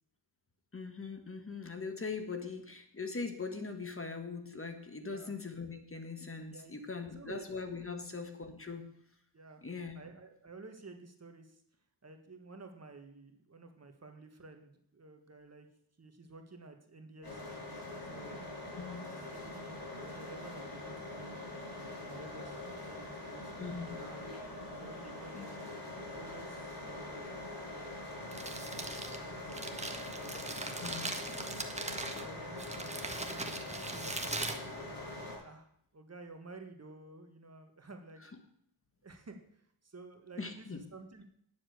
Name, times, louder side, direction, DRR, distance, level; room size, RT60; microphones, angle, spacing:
voice 1, 0.7-8.8 9.6-9.9 18.8-19.1 23.6-24.0 25.3-25.4 30.7-31.1 40.4-40.8, left 4 dB, 30° left, 7 dB, 1.6 m, -41 dB
voice 2, 5.0-5.3 6.5-7.5 7.9-8.1 9.3-9.6 10.0-11.6 12.0-15.7 16.0-17.5 18.0-18.4 19.1-24.2 24.8-25.5 26.0-27.3 27.6-27.9 28.4-30.7 31.3-31.6 32.2-34.9 35.4-38.2 39.0-41.2, right 3 dB, 35° right, 5 dB, 1.7 m, -53 dB
sound 1, 17.2-35.4, left 2 dB, 50° left, 6.0 m, -44 dB
Crumpling crinkling, 28.1-35.4, right 2 dB, 15° right, 1.5 m, -41 dB
10.0 x 7.5 x 6.8 m, 0.70 s
cardioid pair, 75°, 45 cm